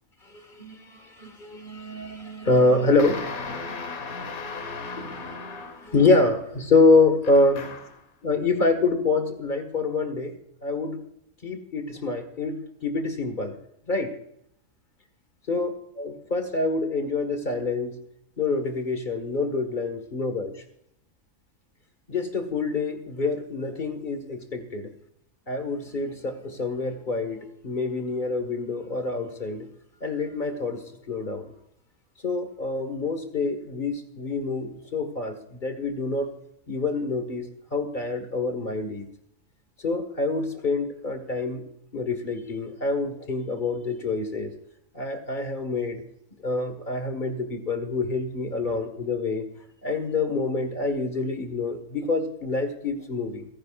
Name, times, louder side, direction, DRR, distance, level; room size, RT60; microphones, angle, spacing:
voice 1, 0.6-5.2 5.8-7.6 8.2-10.3 10.6-11.0 11.4-13.6 13.9-14.1 15.5-18.0 18.4-20.5 22.1-24.9 25.5-29.7 30.0-31.5 32.2-36.3 36.7-39.1 39.8-41.6 41.9-44.5 44.9-46.0 46.4-49.5 49.8-53.5, left 3 dB, 35° left, 8 dB, 1.8 m, -26 dB
sound 1, 3.0-6.0 7.2-8.0, left 4 dB, 70° left, 1.8 m, -36 dB
28.0 x 10.5 x 2.5 m, 0.75 s
omnidirectional pair, 1.5 m